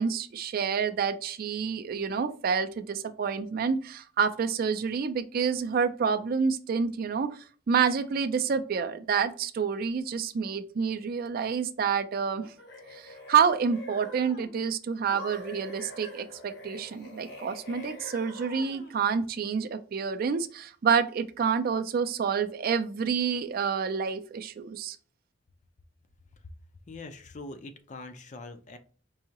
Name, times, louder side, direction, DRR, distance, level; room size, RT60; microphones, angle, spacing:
voice 1, 0.0-7.3 7.7-12.4 12.9-25.0, right 6 dB, 55° right, 10 dB, 0.4 m, -28 dB
sound 1, 12.4-14.6 15.1-19.0, left 1 dB, 65° left, 1.3 m, -45 dB
voice 2, 26.9-28.8, left 2 dB, 40° left, 8 dB, 0.5 m, -43 dB
4.7 x 2.7 x 2.8 m, 0.42 s
head